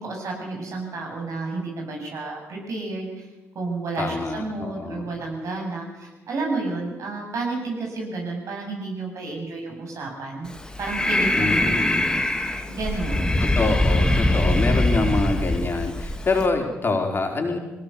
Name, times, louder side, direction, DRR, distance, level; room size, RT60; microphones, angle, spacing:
voice 1, 0.0-3.3 3.5-10.5 10.8-11.8 12.7-13.3, right 3 dB, 60° right, 0 dB, 7.4 m, -31 dB
voice 2, 4.0-5.1 11.4-12.1 13.4-17.6, left 3 dB, 40° left, 2 dB, 4.3 m, -26 dB
Breathing, 10.5-16.5, left 1 dB, 10° left, 2.5 m, -22 dB
21.0 x 18.0 x 6.9 m, 1.2 s
hypercardioid pair, 50°, 6 cm